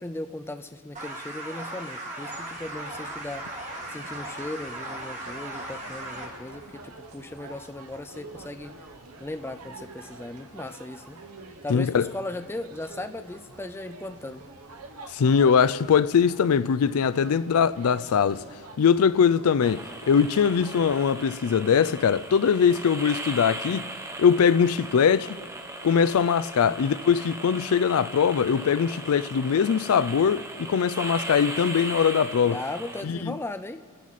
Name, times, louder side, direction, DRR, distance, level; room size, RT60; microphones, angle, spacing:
voice 1, 0.0-3.5 3.9-8.8 9.2-11.2 11.6-14.4 32.5-33.8, left 2 dB, 10° left, 0.4 m, -37 dB
sound 1, 0.9-6.2, right 1 dB, 35° right, 2.4 m, -37 dB
sound 2, 2.3-21.0, right 3 dB, 85° right, 1.1 m, -47 dB
voice 2, 11.7-12.1 15.1-18.4 18.8-23.9 24.2-25.4 25.8-32.6 33.0-33.3, left 7 dB, 75° left, 0.4 m, -22 dB
sound 3, 19.6-33.0, right 2 dB, 15° right, 0.8 m, -38 dB
29.5 x 11.0 x 4.2 m
head